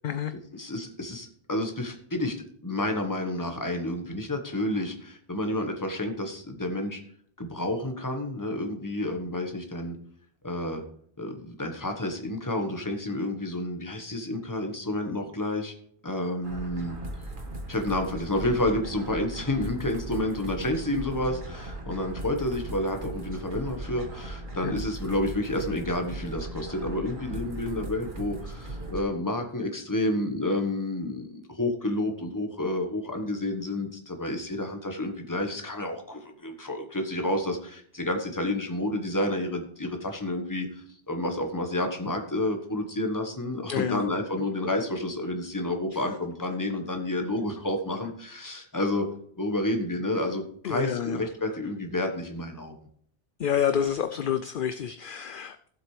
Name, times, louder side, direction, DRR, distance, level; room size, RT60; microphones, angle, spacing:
voice 1, 0.6-2.3 2.6-7.0 7.4-10.0 10.4-10.8 11.2-15.7 16.0-17.0 17.7-49.1 49.4-52.7, left 1 dB, 20° left, 4 dB, 1.2 m, -30 dB
sound 1, 16.4-29.0, right 1 dB, 55° right, 1.6 m, -38 dB
voice 2, 43.7-44.0 50.6-51.2 53.4-55.7, left 9 dB, 60° left, 10 dB, 0.6 m, -28 dB
15.0 x 7.7 x 3.2 m, 0.64 s
omnidirectional pair, 1.1 m